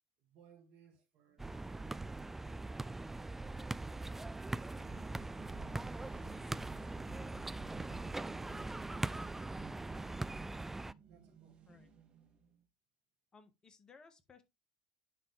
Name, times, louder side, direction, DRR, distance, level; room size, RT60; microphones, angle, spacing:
voice 1, 0.2-3.4 11.1-11.6, right 5 dB, 60° right, 2.2 m, -66 dB
sound 1, 1.4-10.9, right 2 dB, 10° right, 0.3 m, -41 dB
sound 2, 4.8-12.7, right 7 dB, 40° right, 1.5 m, -57 dB
voice 2, 13.3-14.4, left 5 dB, 30° left, 1.4 m, -60 dB
10.0 x 3.9 x 3.3 m
hypercardioid pair, 75°, 3 cm